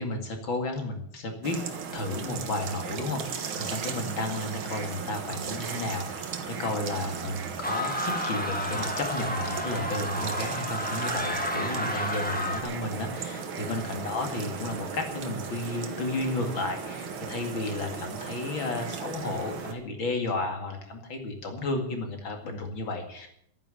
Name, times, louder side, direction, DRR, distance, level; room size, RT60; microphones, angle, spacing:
voice 1, 0.0-1.6 1.9-23.3, left 2 dB, 40° left, 4 dB, 2.5 m, -33 dB
sound 1, 1.4-19.7, right 6 dB, 55° right, 1.5 m, -36 dB
sound 2, 7.6-12.6, left 1 dB, 10° left, 0.6 m, -31 dB
12.0 x 9.5 x 10.0 m, 0.70 s
omnidirectional pair, 4.1 m